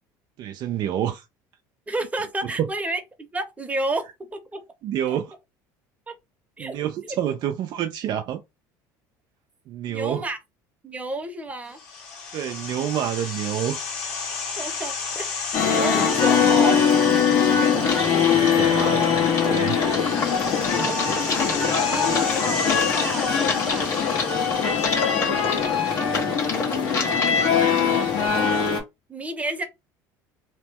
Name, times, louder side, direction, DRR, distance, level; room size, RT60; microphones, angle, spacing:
voice 1, 0.4-1.2 2.6-2.7 4.8-5.3 6.6-8.4 9.7-10.3 12.3-13.8 18.3-19.8, right 10 dB, 55° right, 0.4 m, -28 dB
voice 2, 1.9-3.0 3.3-4.0 4.3-4.6 5.1-5.2 6.1-6.2 6.6-7.2 9.9-10.4 10.8-11.8 14.6-15.3 15.6-16.8 17.6-18.6 20.5-21.0 21.5-24.0 24.7-25.5 27.9-28.4 29.1-29.6, right 2 dB, 15° right, 0.9 m, -32 dB
sound 1, 11.7-25.5, left 4 dB, 90° left, 1.7 m, -32 dB
sound 2, 15.5-28.8, left 6 dB, 55° left, 1.4 m, -22 dB
Typing, 17.8-28.3, left 4 dB, 35° left, 1.6 m, -30 dB
2.9 x 2.2 x 3.4 m
supercardioid pair, 100°, 9 cm